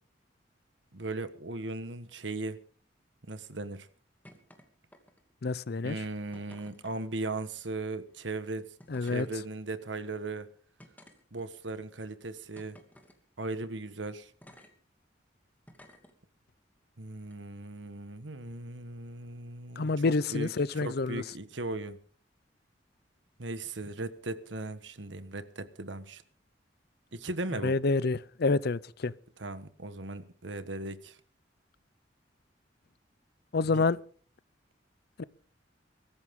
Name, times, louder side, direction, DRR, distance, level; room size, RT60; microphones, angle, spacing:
voice 1, 0.9-2.6 3.3-3.9 5.8-8.6 9.0-10.5 11.3-12.8 13.4-14.3 17.0-22.0 23.4-26.2 27.1-27.8 29.4-31.2 33.6-33.8, right 2 dB, 80° right, 1.4 m, -38 dB
Brick tumble on concrete, 4.2-4.6 4.9-5.4 6.3-7.0 8.1-8.2 8.8-9.3 10.0-10.1 10.8-11.7 12.6-13.2 14.4-14.7 15.7-16.1 17.2-17.3, left 1 dB, 10° left, 2.6 m, -55 dB
voice 2, 5.4-6.0 8.9-9.3 19.8-21.2 27.6-29.1 33.5-34.0 35.2-35.3, left 3 dB, 60° left, 0.6 m, -28 dB
23.0 x 14.0 x 3.7 m
head